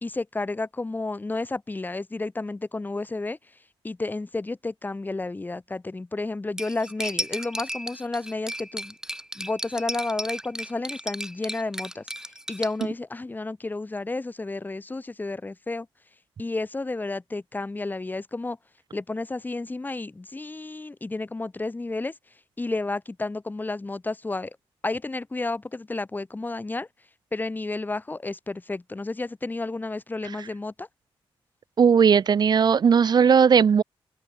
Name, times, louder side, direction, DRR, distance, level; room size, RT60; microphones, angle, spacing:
voice 1, 0.0-3.4 3.8-8.9 9.4-12.1 12.5-15.9 16.4-18.6 18.9-22.1 22.6-24.6 24.8-26.9 27.3-30.9, left 2 dB, 20° left, 0.6 m, -31 dB
Cutlery silverware, 6.6-12.8, right 1 dB, 5° right, 1.8 m, -34 dB
voice 2, 31.8-33.8, right 6 dB, 45° right, 0.4 m, -17 dB
open air
cardioid pair, 75°, 10 cm